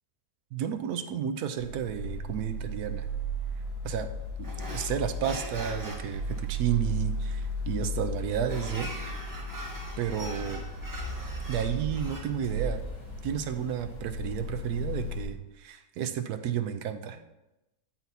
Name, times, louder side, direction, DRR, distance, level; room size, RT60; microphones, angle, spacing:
voice 1, 0.5-3.1 3.8-4.1 4.7-8.9 10.0-10.7 11.2-12.8 13.2-17.2, right 9 dB, 75° right, 8 dB, 1.2 m, -32 dB
sound 1, 1.6-15.2, equal, 80° left, 2.4 m, -35 dB
sound 2, 4.4-15.3, right 1 dB, 15° right, 1.0 m, -44 dB
8.1 x 5.8 x 4.2 m, 0.95 s
omnidirectional pair, 1.7 m